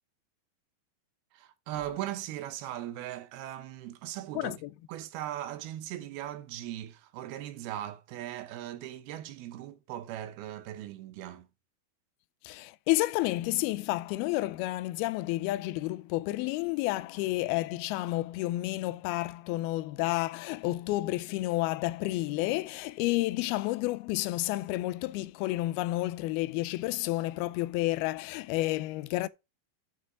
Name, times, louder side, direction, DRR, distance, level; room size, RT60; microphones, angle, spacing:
voice 1, 1.3-4.6 4.9-11.5, right 13 dB, 85° right, 2.8 m, -39 dB
voice 2, 4.4-4.7 12.4-29.3, left 18 dB, 90° left, 2.5 m, -30 dB
7.0 x 6.4 x 5.0 m
omnidirectional pair, 4.3 m